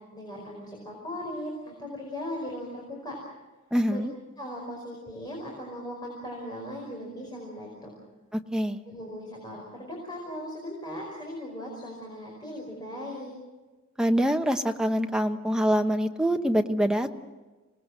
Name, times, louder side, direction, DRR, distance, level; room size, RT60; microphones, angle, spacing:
voice 1, 0.1-3.2 3.9-4.0 4.4-8.0 8.8-13.3, equal, 20° left, -2 dB, 5.1 m, -38 dB
voice 2, 3.7-4.1 8.5-8.8 14.0-17.1, equal, 5° right, 5 dB, 1.0 m, -25 dB
27.0 x 19.5 x 7.7 m, 1.2 s
head